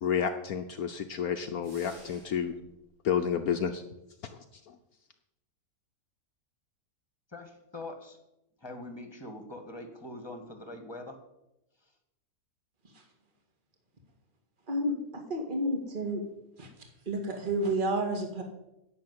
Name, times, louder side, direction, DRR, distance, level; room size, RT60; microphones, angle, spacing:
voice 1, 0.0-2.5 3.0-3.8, left 7 dB, 65° left, 7 dB, 1.2 m, -30 dB
sound 1, 1.6-2.6, right 1 dB, 50° right, 4.5 m, -53 dB
voice 2, 7.3-8.2 8.6-11.2, left 2 dB, 15° left, 6 dB, 1.7 m, -43 dB
voice 3, 14.7-16.2 16.6-16.7 17.1-18.4, right 1 dB, 30° right, 3 dB, 2.1 m, -30 dB
11.0 x 7.1 x 9.6 m, 0.89 s
omnidirectional pair, 1.7 m